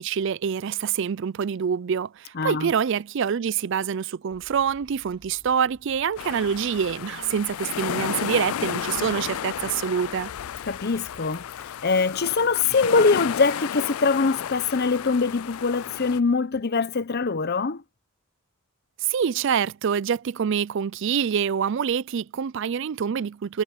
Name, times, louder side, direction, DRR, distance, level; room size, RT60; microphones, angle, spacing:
voice 1, 0.0-10.3 19.0-23.6, right 7 dB, 60° right, 0.4 m, -26 dB
voice 2, 2.3-2.7 10.7-11.4 11.8-17.8, left 4 dB, 50° left, 0.7 m, -23 dB
sound 1, 4.3-10.8, equal, 25° right, 4.9 m, -56 dB
sound 2, 6.2-16.2, left 9 dB, 85° left, 0.4 m, -33 dB
head